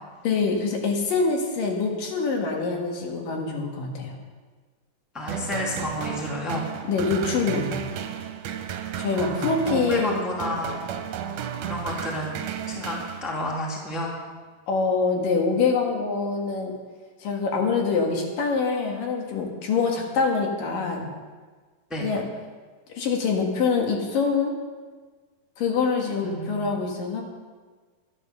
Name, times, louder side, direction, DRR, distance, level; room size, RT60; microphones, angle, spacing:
voice 1, 0.2-4.1 6.9-7.8 9.0-10.2 14.7-16.7 17.2-21.1 22.0-22.2 22.9-24.5 25.6-27.2, left 4 dB, 75° left, 1 dB, 3.5 m, -25 dB
voice 2, 5.1-6.7 9.1-10.9 11.6-12.4 12.7-14.1 21.9-22.1 26.2-26.9, left 1 dB, ahead, -2 dB, 1.8 m, -31 dB
sound 1, 5.3-13.7, right 8 dB, 70° right, 2.3 m, -33 dB
12.0 x 10.5 x 6.8 m, 1.4 s
omnidirectional pair, 3.9 m